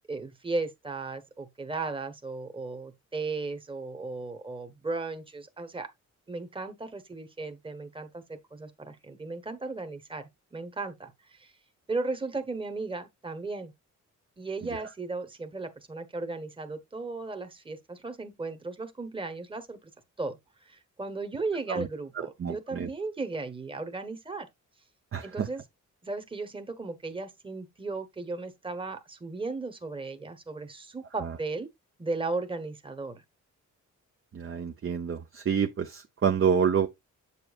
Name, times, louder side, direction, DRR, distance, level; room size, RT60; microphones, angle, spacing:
voice 1, 0.1-5.9 6.3-11.5 11.9-13.7 14.4-19.8 20.2-20.4 20.7-24.5 25.2-25.6 26.0-31.7 32.0-33.2, right 3 dB, 15° right, 1.2 m, -36 dB
voice 2, 22.1-22.9 25.1-25.5 31.2-31.4 34.3-36.9, right 7 dB, 45° right, 0.8 m, -28 dB
7.5 x 6.9 x 2.5 m
cardioid pair, 85°, 31 cm